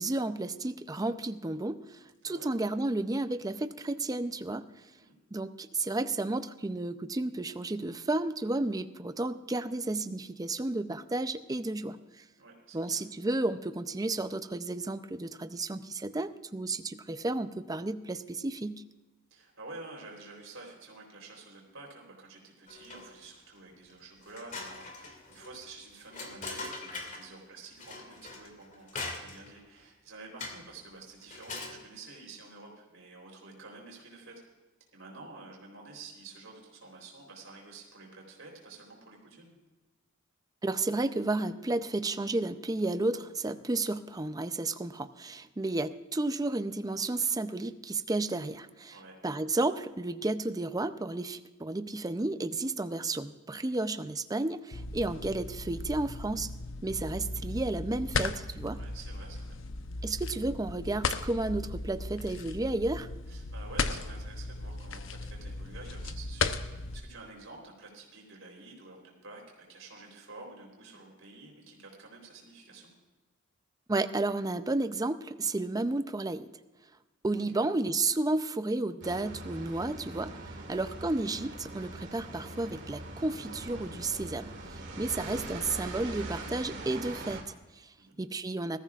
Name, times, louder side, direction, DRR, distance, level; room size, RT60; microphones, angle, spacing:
voice 1, 0.0-4.7 5.3-12.2 12.7-18.8 40.6-49.0 49.2-56.5 56.8-58.8 60.0-63.1 73.9-76.5 77.2-87.9 88.2-88.8, right 2 dB, 20° right, 11 dB, 0.5 m, -32 dB
voice 2, 12.4-13.0 19.3-34.4 34.9-39.5 48.9-49.2 58.7-59.5 63.3-72.9 77.5-77.6 85.1-85.3 88.0-88.2, right 3 dB, 80° right, -1 dB, 3.8 m, -49 dB
sound 1, 22.7-23.3 23.7-23.8 24.2-27.3 27.8-29.6 30.4-30.8 31.2-31.8, left 3 dB, 40° left, 2.4 m, -42 dB
sound 2, 54.7-67.0, left 3 dB, 70° left, 0.8 m, -36 dB
sound 3, 79.0-87.4, right 2 dB, 60° right, 2.3 m, -42 dB
20.5 x 14.0 x 2.4 m, 1.2 s
head